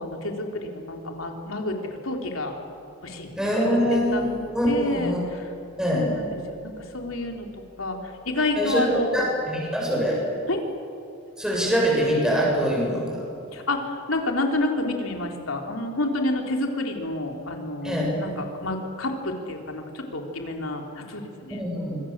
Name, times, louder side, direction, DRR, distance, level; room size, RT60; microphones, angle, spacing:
voice 1, 0.0-1.8 2.0-2.6 3.0-3.3 3.9-4.4 4.6-5.5 5.9-7.5 7.8-9.2 10.5-10.6 13.5-21.6, left 2 dB, 75° left, 2 dB, 3.7 m, -29 dB
voice 2, 3.4-5.2 5.8-6.1 8.6-8.8 9.1-10.2 11.4-13.2 17.8-18.1 21.5-22.0, equal, 5° right, -3 dB, 7.5 m, -24 dB
25.5 x 25.5 x 7.5 m, 2.5 s
head